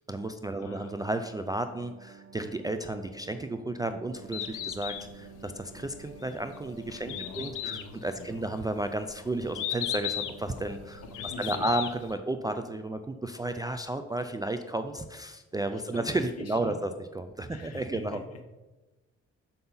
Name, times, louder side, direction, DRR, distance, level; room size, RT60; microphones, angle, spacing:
voice 1, 0.0-11.0 11.4-18.2, right 2 dB, 15° right, 7 dB, 0.3 m, -33 dB
voice 2, 0.6-0.9 7.0-8.5 11.0-11.7 15.7-16.1 16.4-16.8 17.5-18.4, left 3 dB, 55° left, 5 dB, 1.1 m, -44 dB
sound 1, 0.8-13.8 14.2-14.3, right 7 dB, 55° right, 0.8 m, -52 dB
Bird, 4.1-12.1, left 11 dB, 85° left, 0.6 m, -37 dB
6.8 x 5.6 x 3.9 m, 1.1 s
cardioid pair, 90°, 30 cm